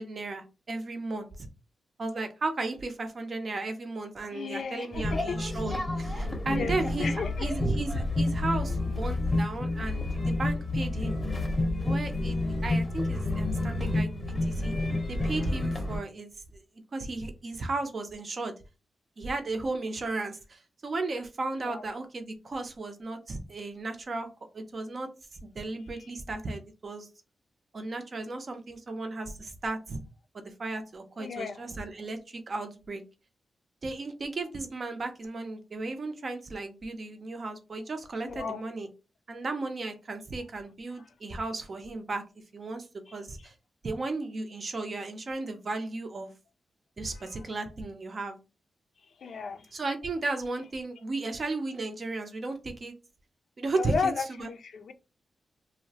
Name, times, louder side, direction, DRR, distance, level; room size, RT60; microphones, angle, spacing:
voice 1, 0.0-1.5 2.0-7.1 7.4-11.2 11.8-14.1 14.4-14.7 15.1-16.6 16.9-18.5 19.2-24.3 24.5-25.1 25.4-27.1 27.7-30.0 30.3-33.0 33.8-38.9 39.3-42.2 42.5-42.9 43.1-43.5 43.8-46.3 47.0-48.4 49.7-52.9 53.6-54.1 54.4-54.5, right 3 dB, 45° right, 0.5 m, -35 dB
voice 2, 4.3-5.4 6.5-7.5 21.6-21.8 26.0-26.1 31.2-31.6 38.2-38.6 43.1-43.2 47.1-47.5 49.2-49.7 53.7-54.9, left 5 dB, 65° left, 0.4 m, -34 dB
sound 1, 4.9-16.0, left 2 dB, 20° left, 0.7 m, -29 dB
2.7 x 2.0 x 2.7 m
wide cardioid pair, 115°, 0 cm